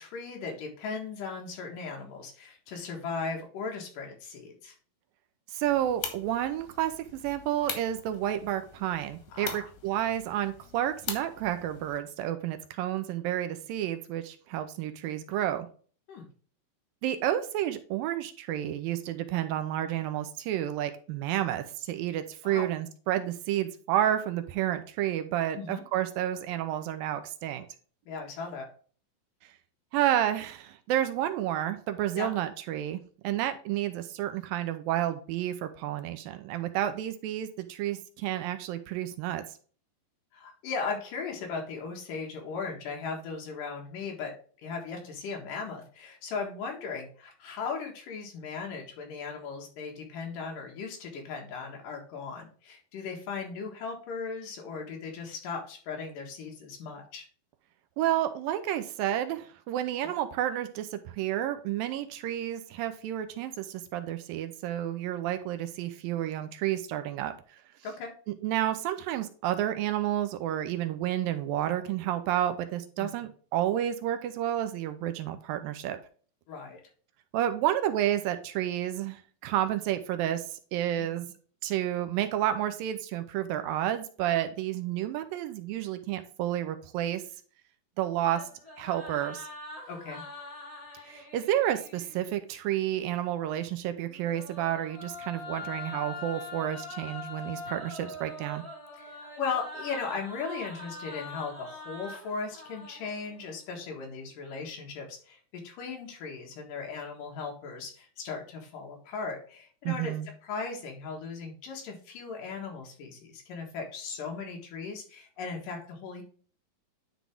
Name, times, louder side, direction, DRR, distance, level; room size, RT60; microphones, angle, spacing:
voice 1, 0.0-4.7 9.3-9.7 16.1-16.3 22.4-22.7 25.6-25.8 28.1-28.7 32.1-32.3 40.3-44.3 44.6-57.3 67.8-68.1 73.0-73.1 76.5-76.8 81.0-81.1 89.9-90.2 99.0-110.1 110.4-116.2, left 5 dB, 70° left, 1 dB, 3.1 m, -37 dB
voice 2, 5.5-15.7 17.0-27.7 29.9-39.4 58.0-67.3 68.4-76.0 77.3-80.4 80.7-81.3 81.6-87.2 88.0-88.4 88.8-89.5 91.1-98.6 109.9-110.3, right 12 dB, 80° right, 9 dB, 2.4 m, -30 dB
sound 1, 5.6-12.0, left 7 dB, 85° left, 3.3 m, -42 dB
sound 2, 88.2-92.2 94.0-103.6, left 2 dB, 15° left, 1.3 m, -43 dB
10.5 x 4.1 x 3.5 m, 0.42 s
omnidirectional pair, 4.2 m